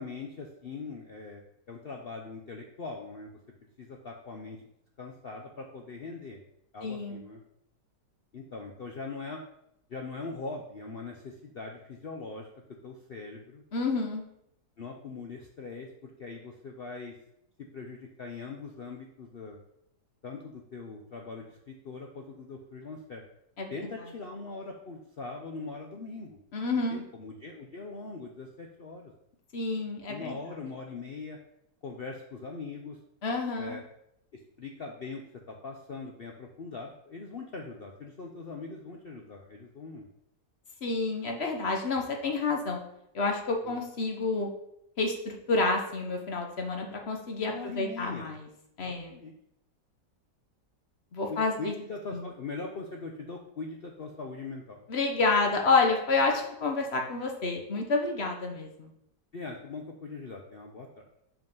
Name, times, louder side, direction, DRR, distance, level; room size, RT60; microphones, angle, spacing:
voice 1, 0.0-1.4 1.7-3.3 3.8-4.6 5.0-6.4 6.7-7.4 8.3-9.4 9.9-12.5 12.8-13.6 14.8-17.2 17.7-19.6 20.2-23.2 23.7-26.4 26.9-29.1 30.1-31.4 31.8-33.0 33.6-33.8 34.3-40.1 43.6-43.8 47.5-48.3 48.8-49.4 51.3-54.8 59.3-61.0, left 3 dB, 85° left, 1 dB, 0.5 m, -41 dB
voice 2, 6.8-7.2 13.7-14.2 23.6-23.9 26.5-27.0 29.5-30.4 33.2-33.8 40.8-42.8 43.1-44.5 45.0-48.5 48.8-49.1 51.1-51.7 52.1-52.2 54.9-58.9, left 3 dB, 45° left, 3 dB, 0.9 m, -29 dB
5.4 x 5.0 x 5.3 m, 0.77 s
omnidirectional pair, 1.9 m